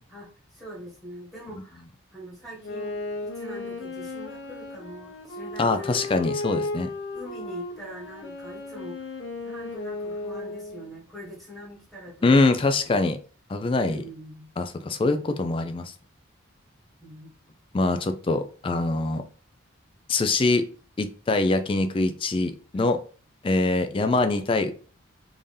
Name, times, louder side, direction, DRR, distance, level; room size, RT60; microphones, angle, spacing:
voice 1, 0.1-1.8 2.1-6.0 7.1-9.0 9.4-13.0 13.8-14.5 17.0-17.3 22.7-22.9, equal, ahead, 1.4 m, -43 dB
Wind instrument woodwind instrument, 2.6-10.9, left 2 dB, 65° left, 1.0 m, -35 dB
voice 2, 5.6-6.9 12.2-13.2 13.5-14.0 14.6-15.9 17.7-19.2 20.1-20.6 21.0-23.0 23.4-24.7, left 3 dB, 25° left, 0.3 m, -23 dB
3.6 x 2.7 x 3.2 m
head